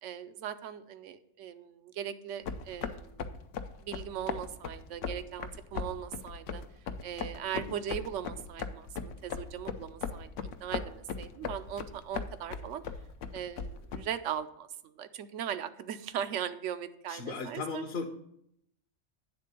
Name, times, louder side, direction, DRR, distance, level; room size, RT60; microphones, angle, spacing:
voice 1, 0.0-3.2 3.8-6.6 7.0-10.3 10.6-12.8 13.3-17.8, right 9 dB, 85° right, 12 dB, 0.9 m, -39 dB
sound 1, 2.4-14.0, left 6 dB, 85° left, 1.0 m, -39 dB
voice 2, 17.1-18.0, left 4 dB, 60° left, 3 dB, 0.9 m, -37 dB
9.4 x 3.7 x 6.7 m, 0.73 s
omnidirectional pair, 1.2 m